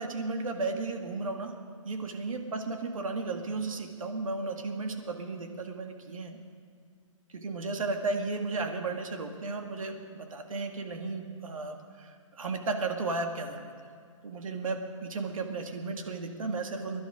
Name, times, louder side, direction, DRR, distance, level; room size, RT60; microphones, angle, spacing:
voice 1, 0.0-1.5 1.8-6.4 7.3-13.7 14.2-17.0, right 3 dB, 75° right, 4 dB, 2.2 m, -34 dB
23.0 x 11.0 x 5.0 m, 2.2 s
hypercardioid pair, 160°, 17 cm